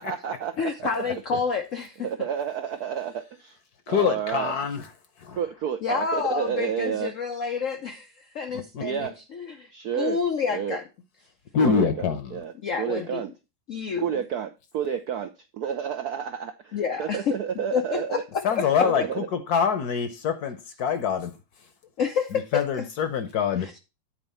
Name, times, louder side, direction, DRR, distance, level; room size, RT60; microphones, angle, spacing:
voice 1, 0.0-0.9 2.0-3.6 3.9-4.5 5.4-7.1 8.8-9.1 9.7-10.2 10.5-10.8 11.6-12.5 12.8-13.3 14.0-18.2 18.8-19.3, right 8 dB, 75° right, 0.8 m, -30 dB
voice 2, 0.6-2.1 5.8-10.9 12.6-13.2 13.7-14.2 16.7-17.3 17.7-18.2 18.5-18.7 22.0-22.9 23.5-23.8, left 6 dB, 75° left, 0.7 m, -29 dB
voice 3, 3.9-4.9 5.2-5.4 8.7-8.8 11.5-12.4 18.4-21.3 22.3-23.7, left 7 dB, 60° left, 1.2 m, -25 dB
9.3 x 4.3 x 5.5 m
omnidirectional pair, 2.3 m